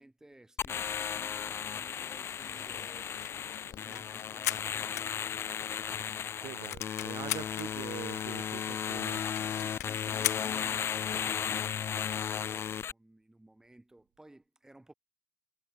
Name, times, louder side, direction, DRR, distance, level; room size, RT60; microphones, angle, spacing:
voice 1, 0.0-5.9 9.1-14.9, right 1 dB, 5° right, 2.1 m, -56 dB
sound 1, 0.6-12.9, left 8 dB, 30° left, 0.4 m, -35 dB
sound 2, 1.4-6.5, left 15 dB, 50° left, 1.7 m, -56 dB
sound 3, 3.0-5.7 6.1-6.2 6.4-7.7 8.3-8.4 8.6-8.7 8.9-9.0 9.4-11.0, left 14 dB, 85° left, 0.5 m, -37 dB
voice 2, 6.4-9.2, right 16 dB, 50° right, 0.5 m, -44 dB
hypercardioid pair, 90°, 9 cm